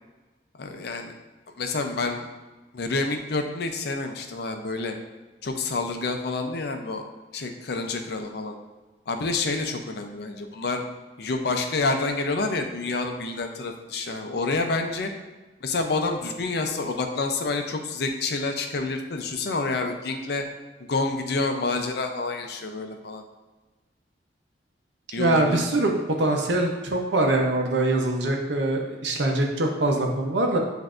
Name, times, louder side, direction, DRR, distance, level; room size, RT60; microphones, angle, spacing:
voice 1, 0.6-1.1 1.6-2.3 2.7-5.0 5.4-7.1 7.3-8.5 9.1-10.8 11.2-15.1 15.6-20.4 20.8-23.2 25.1-25.6, left 3 dB, 60° left, 5 dB, 0.5 m, -28 dB
voice 2, 25.2-30.6, right 2 dB, 75° right, 2 dB, 0.7 m, -23 dB
7.8 x 2.6 x 2.5 m, 1.2 s
head